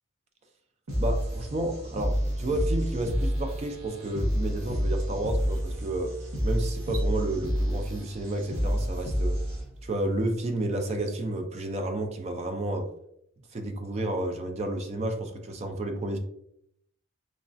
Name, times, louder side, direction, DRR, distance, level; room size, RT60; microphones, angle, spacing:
sound 1, 0.9-9.9, equal, 90° right, 0.8 m, -29 dB
voice 1, 1.0-6.1 6.4-9.4 9.8-12.9 13.5-16.2, right 1 dB, 30° right, 5 dB, 0.3 m, -31 dB
sound 2, 2.2-2.3 2.7-3.1 4.8-4.9 5.4-5.6 6.8-7.1, right 4 dB, 70° right, 1.3 m, -48 dB
3.2 x 2.3 x 2.5 m, 0.74 s
head